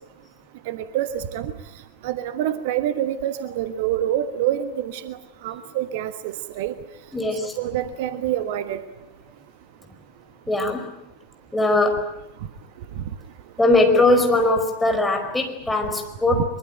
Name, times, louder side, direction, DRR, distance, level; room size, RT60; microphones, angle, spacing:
voice 1, 0.7-1.5 2.0-5.2 5.4-6.7 7.6-8.8 16.3-16.4, right 11 dB, 50° right, 10 dB, 1.4 m, -26 dB
voice 2, 7.1-7.6 10.5-10.9 11.5-12.1 13.6-16.4, left 2 dB, 5° left, 3 dB, 5.1 m, -20 dB
24.0 x 23.0 x 9.0 m, 0.93 s
figure-of-eight pair, 90°, 0 cm